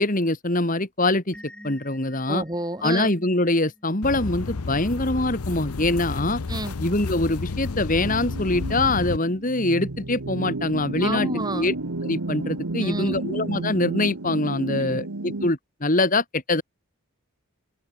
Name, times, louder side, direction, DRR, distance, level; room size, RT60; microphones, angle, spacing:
voice 1, 0.0-1.4 1.6-2.4 2.8-6.4 6.8-11.7 12.0-16.6, left 2 dB, 35° left, 2.5 m, -24 dB
sound 1, 1.3-13.0, equal, 5° left, 6.4 m, -51 dB
voice 2, 2.3-3.1 6.5-6.8 11.0-11.7 12.8-13.2 14.8-15.0, right 1 dB, 20° right, 4.8 m, -30 dB
sound 2, 4.0-9.2, left 3 dB, 90° left, 0.8 m, -31 dB
sound 3, 8.0-15.5, right 2 dB, 85° right, 1.5 m, -32 dB
head